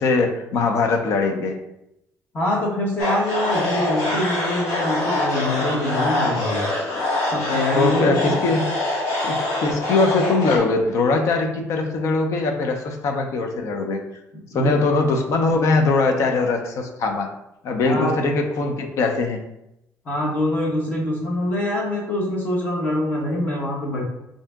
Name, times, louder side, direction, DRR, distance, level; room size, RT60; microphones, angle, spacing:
voice 1, 0.0-1.6 7.7-8.7 9.2-9.4 9.6-14.0 14.5-17.3 17.6-19.4, left 3 dB, 55° left, 4 dB, 0.6 m, -21 dB
voice 2, 2.3-6.6 7.3-8.4 14.5-14.8 17.8-18.2 20.0-24.0, left 1 dB, 30° left, -3 dB, 1.1 m, -24 dB
sound 1, 3.0-10.6, left 2 dB, 75° left, 1.2 m, -24 dB
3.7 x 2.7 x 3.4 m, 0.85 s
cardioid pair, 180°, 6 cm